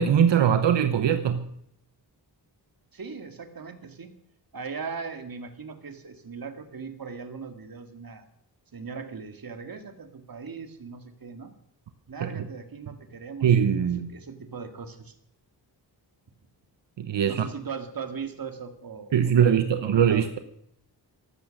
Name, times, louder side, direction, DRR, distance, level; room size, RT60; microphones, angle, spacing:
voice 1, 0.0-1.4 12.2-12.3 13.4-14.1 17.0-17.4 19.1-20.4, right 8 dB, 85° right, 9 dB, 1.0 m, -21 dB
voice 2, 2.9-4.1 4.5-8.3 8.7-11.5 12.1-13.5 14.1-15.1 17.3-19.6 19.9-20.3, right 5 dB, 55° right, 7 dB, 2.1 m, -39 dB
14.5 x 12.5 x 6.6 m, 0.72 s
wide cardioid pair, 85°, 42 cm